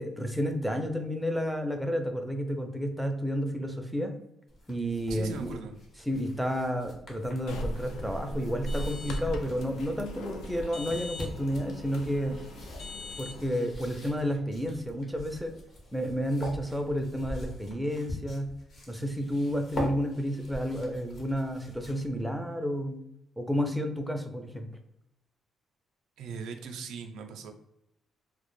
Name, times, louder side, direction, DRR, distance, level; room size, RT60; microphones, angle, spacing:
voice 1, 0.0-4.1 4.7-5.6 6.1-12.4 13.2-15.6 15.9-18.5 18.9-23.0 23.4-24.7, equal, ahead, 4 dB, 0.4 m, -31 dB
sound 1, 4.5-22.2, left 1 dB, 55° left, 0.8 m, -44 dB
voice 2, 5.1-5.8 26.2-27.5, right 5 dB, 85° right, 5 dB, 0.3 m, -39 dB
sound 2, 7.5-13.5, equal, 85° left, 0.3 m, -38 dB
2.0 x 2.0 x 3.0 m, 0.80 s
cardioid pair, 90°, 0 cm